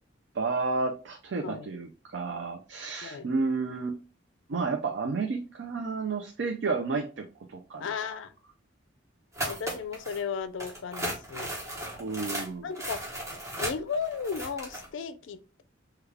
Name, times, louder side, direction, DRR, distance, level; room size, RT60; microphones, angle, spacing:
voice 1, 0.3-4.0 4.5-8.2 12.0-12.7, right 4 dB, 65° right, 3 dB, 0.4 m, -31 dB
voice 2, 7.8-8.3 9.4-11.5 12.6-13.0 13.6-15.6, left 6 dB, 75° left, 12 dB, 0.4 m, -35 dB
sound 1, 9.3-10.2 10.6-14.9, right 1 dB, 15° right, 0.9 m, -36 dB
3.5 x 2.3 x 3.2 m, 0.36 s
head